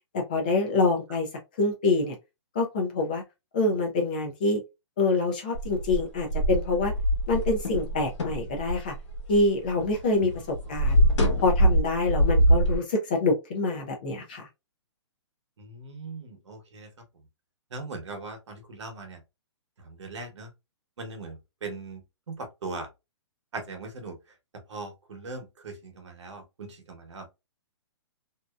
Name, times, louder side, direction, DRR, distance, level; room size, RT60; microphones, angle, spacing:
voice 1, 0.1-1.3 1.6-2.2 2.5-3.2 3.5-4.6 5.0-6.9 7.3-8.9 9.3-10.3 10.7-11.0 11.4-14.5, left 3 dB, 20° left, 0.4 m, -26 dB
sound 1, 5.5-10.0 10.2-12.8, right 1 dB, 80° left, 1.0 m, -24 dB
voice 2, 15.6-16.9 17.7-19.2 19.8-20.5 21.0-22.0 22.3-22.9 23.5-24.2 24.5-27.3, right 3 dB, 75° right, 1.0 m, -39 dB
2.6 x 2.1 x 2.3 m
hypercardioid pair, 180°, 15 cm